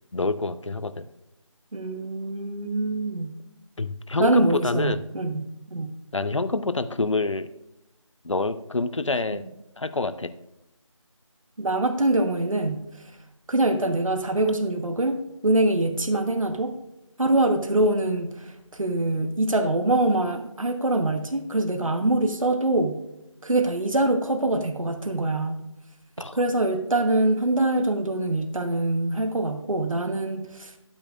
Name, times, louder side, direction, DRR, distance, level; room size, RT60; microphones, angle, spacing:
voice 1, 0.1-1.1 3.8-5.0 6.1-7.5 8.2-9.4 9.8-10.3 26.2-26.4, left 3 dB, 65° left, 13 dB, 0.7 m, -27 dB
voice 2, 1.7-3.3 4.2-5.4 5.7-5.9 9.3-9.4 11.6-13.1 13.5-16.7 17.2-23.0 23.4-25.6 26.3-30.8, right 2 dB, 80° right, 5 dB, 1.3 m, -24 dB
11.0 x 8.8 x 2.5 m, 0.91 s
figure-of-eight pair, 175°, 17 cm